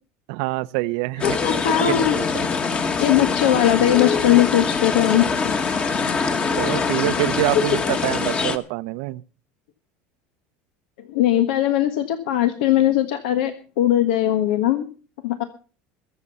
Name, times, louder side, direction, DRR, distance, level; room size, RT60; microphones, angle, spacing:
voice 1, 0.3-2.5 6.6-9.2, right 20 dB, 70° right, 0.7 m, -26 dB
voice 2, 1.2-2.2 3.0-5.5 11.1-14.8 15.2-15.4, left 12 dB, 90° left, 1.4 m, -20 dB
sound 1, 1.2-8.6, left 5 dB, 25° left, 1.5 m, -23 dB
22.5 x 7.5 x 5.5 m
supercardioid pair, 140°, 5 cm